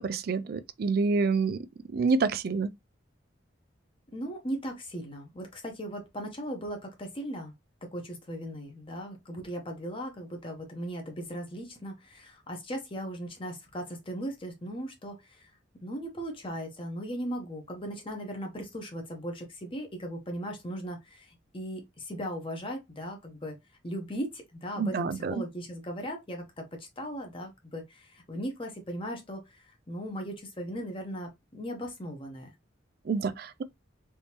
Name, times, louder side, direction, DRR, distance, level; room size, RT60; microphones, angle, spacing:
voice 1, 0.0-1.6 1.9-2.7 24.8-25.4 33.1-33.6, right 4 dB, 50° right, 0.3 m, -27 dB
voice 2, 4.1-7.5 7.9-15.5 15.8-23.6 23.8-32.5, equal, 25° left, 0.8 m, -38 dB
3.4 x 2.7 x 2.8 m
head